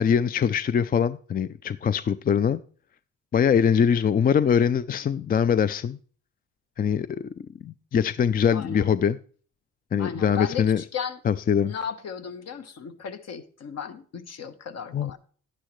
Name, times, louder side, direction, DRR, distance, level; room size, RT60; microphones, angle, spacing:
voice 1, 0.0-2.6 3.3-6.0 6.8-7.3 7.6-9.2 9.9-10.8 11.2-11.7 14.9-15.2, left 7 dB, 30° left, 0.4 m, -23 dB
voice 2, 8.5-8.9 10.0-11.2 11.6-15.2, left 7 dB, 55° left, 1.2 m, -35 dB
11.0 x 10.0 x 3.2 m
cardioid pair, 90°, 30 cm